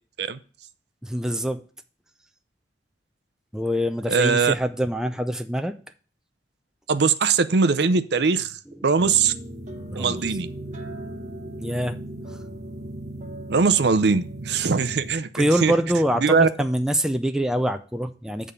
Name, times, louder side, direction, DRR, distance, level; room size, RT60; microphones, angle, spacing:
voice 1, 1.0-1.6 3.5-5.7 9.9-10.2 11.6-12.0 12.3-12.4 15.3-18.5, equal, 5° right, 0.4 m, -25 dB
voice 2, 4.1-4.5 6.9-9.3 9.9-10.5 13.5-15.7 16.2-16.5, right 5 dB, 65° right, 0.5 m, -21 dB
sound 1, 9.0-15.1, right 1 dB, 40° right, 1.1 m, -37 dB
8.5 x 3.7 x 6.7 m
head